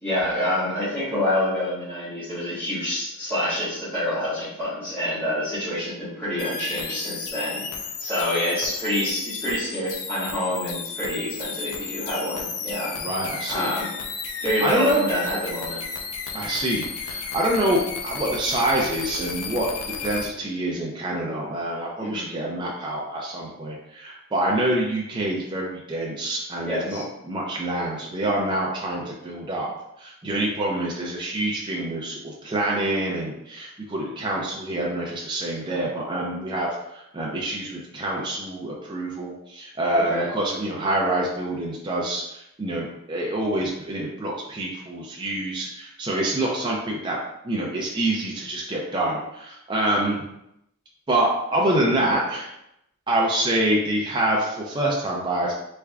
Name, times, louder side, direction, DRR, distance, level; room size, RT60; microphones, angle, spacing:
voice 1, 0.0-7.6 8.0-12.9 13.5-13.9 14.4-15.8 22.0-22.3 26.6-27.0 40.1-40.3, left 1 dB, 10° left, -15 dB, 1.4 m, -27 dB
sound 1, 6.4-20.3, left 5 dB, 85° left, 0.5 m, -33 dB
voice 2, 13.0-13.7 14.6-15.0 16.3-29.7 30.0-47.2 47.4-50.3 51.1-52.5 53.1-55.5, right 1 dB, 20° right, -3 dB, 0.4 m, -26 dB
3.4 x 3.3 x 2.3 m, 0.82 s
head